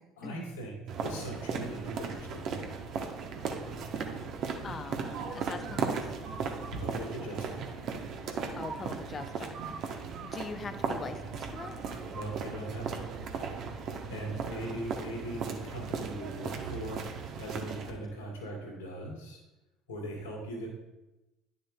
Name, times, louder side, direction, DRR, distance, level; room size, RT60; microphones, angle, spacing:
voice 1, 0.2-0.7 1.0-2.7 6.7-7.6 12.1-12.9 14.1-19.4 19.9-20.7, right 1 dB, 85° left, -3 dB, 2.5 m, -39 dB
sound 1, 0.9-17.9, right 5 dB, 55° right, 0.9 m, -37 dB
voice 2, 4.6-6.1 8.6-11.8 14.1-14.4, left 4 dB, 35° left, 10 dB, 0.6 m, -43 dB
9.9 x 6.7 x 2.2 m, 0.99 s
hypercardioid pair, 60°, 0 cm